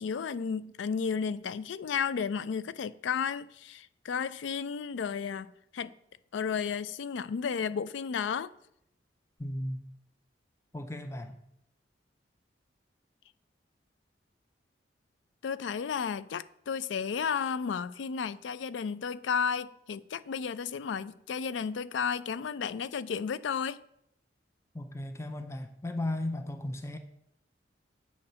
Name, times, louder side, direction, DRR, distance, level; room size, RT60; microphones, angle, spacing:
voice 1, 0.0-5.9 6.3-8.5 15.4-23.8, left 6 dB, 75° left, 0.4 m, -33 dB
voice 2, 9.4-9.9 10.7-11.4 24.7-27.0, left 1 dB, 15° left, 0.4 m, -35 dB
8.3 x 4.2 x 6.7 m
head